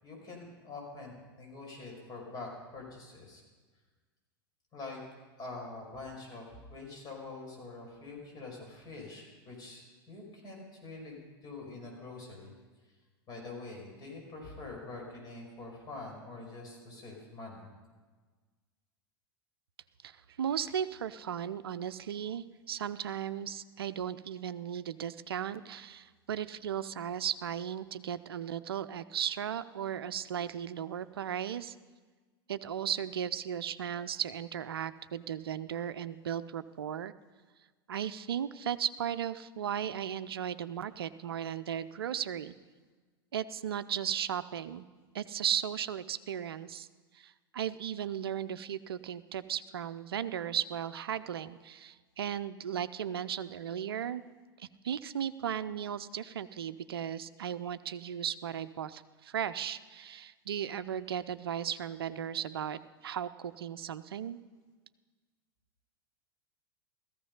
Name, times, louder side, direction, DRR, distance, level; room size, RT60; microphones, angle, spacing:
voice 1, 0.0-3.4 4.7-5.0 5.4-12.5 13.3-17.7, left 3 dB, 30° left, 0 dB, 5.5 m, -45 dB
voice 2, 20.0-31.8 32.5-37.1 37.9-42.5 43.3-44.8 45.1-46.9 47.1-54.2 54.6-64.4, right 9 dB, 70° right, 13 dB, 0.6 m, -36 dB
15.0 x 14.5 x 5.5 m, 1.4 s
figure-of-eight pair, 85°, 13 cm